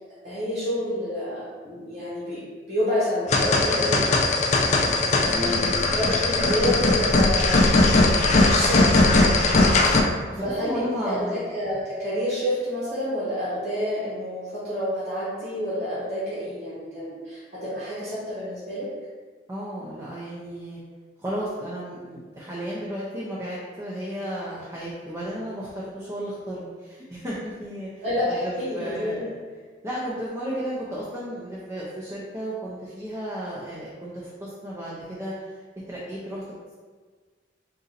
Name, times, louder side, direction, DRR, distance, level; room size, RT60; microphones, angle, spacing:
voice 1, 0.2-4.0 5.2-8.1 8.4-9.1 10.4-18.9 28.0-29.3, equal, 60° right, -11 dB, 1.3 m, -29 dB
sound 1, 3.3-10.0, left 2 dB, 40° left, 0.4 m, -19 dB
voice 2, 5.3-5.8 9.7-11.5 19.5-20.8 21.2-29.3 29.8-35.6 35.9-36.4, equal, 20° right, -7 dB, 0.6 m, -34 dB
3.9 x 2.6 x 4.0 m, 1.5 s
head